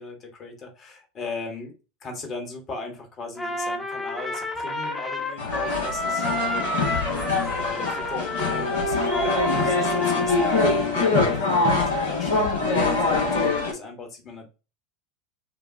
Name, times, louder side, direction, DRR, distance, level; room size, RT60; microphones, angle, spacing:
voice 1, 0.0-1.7 2.0-6.8 7.6-14.5, left 3 dB, 35° left, 1.3 m, -37 dB
Trumpet, 3.4-10.9, left 1 dB, 10° left, 1.0 m, -30 dB
sound 1, 5.4-13.7, left 3 dB, 75° left, 1.4 m, -24 dB
5.7 x 2.3 x 2.6 m
figure-of-eight pair, 80°, 0 cm